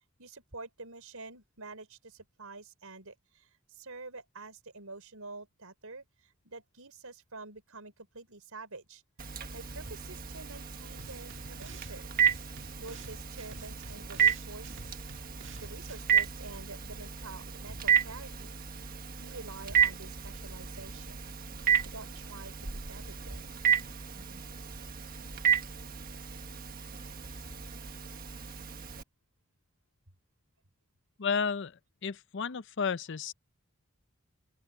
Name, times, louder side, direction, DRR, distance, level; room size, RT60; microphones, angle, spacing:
voice 1, 0.2-9.0 9.5-12.1 12.8-14.8 15.5-18.6 19.2-21.3 21.8-23.5, right 3 dB, 80° right, 4.7 m, -48 dB
Telephone, 9.2-29.0, right 8 dB, 40° right, 1.5 m, -32 dB
sound 1, 11.0-12.0 12.2-16.0, right 3 dB, 55° right, 1.7 m, -51 dB
voice 2, 31.2-31.7 32.0-33.3, left 5 dB, 55° left, 0.5 m, -32 dB
open air
head